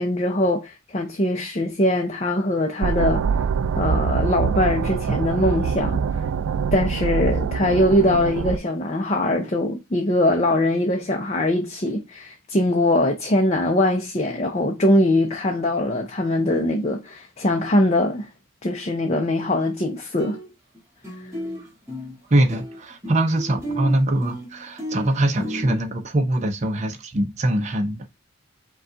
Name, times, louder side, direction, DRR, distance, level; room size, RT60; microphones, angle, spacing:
voice 1, 0.0-3.2 3.8-6.0 6.7-18.3 18.6-20.4, left 1 dB, 30° left, 0.5 m, -22 dB
sound 1, 2.8-8.6, right 6 dB, 85° right, 0.3 m, -24 dB
sound 2, 19.8-19.9 20.2-20.8 21.0-25.8, equal, 15° right, 1.6 m, -33 dB
voice 2, 22.3-28.1, right 1 dB, 35° right, 0.6 m, -23 dB
5.3 x 2.3 x 3.8 m
head